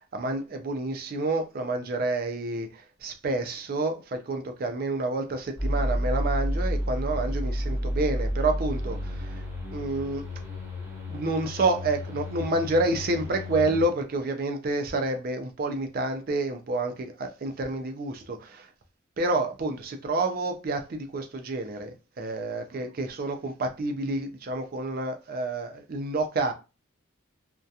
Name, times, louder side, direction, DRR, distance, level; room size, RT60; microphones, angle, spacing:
voice 1, 0.1-9.4 9.7-10.3 11.1-18.7 19.2-26.5, right 2 dB, 45° right, 0.4 m, -29 dB
sound 1, 5.6-13.8, equal, 15° right, 0.7 m, -31 dB
2.7 x 2.2 x 2.3 m
head